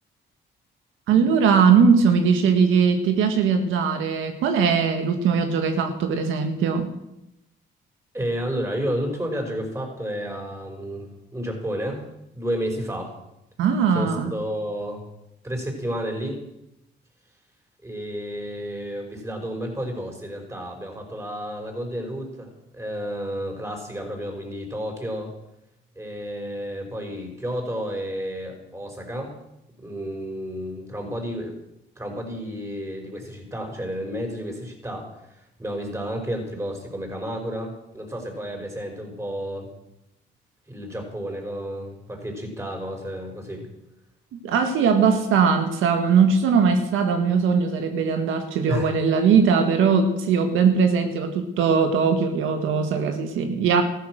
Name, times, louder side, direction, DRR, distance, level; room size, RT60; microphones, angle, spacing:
voice 1, 1.1-6.9 13.6-14.3 44.3-53.8, right 6 dB, 90° right, 6 dB, 1.6 m, -20 dB
voice 2, 8.1-12.1 12.3-13.2 13.9-15.0 15.4-16.4 17.8-25.3 26.0-29.3 29.8-31.6 32.0-39.7 40.7-43.7 48.7-48.9, equal, 15° right, 2 dB, 5.4 m, -31 dB
14.5 x 13.5 x 6.3 m, 0.87 s
cardioid pair, 90°, 20 cm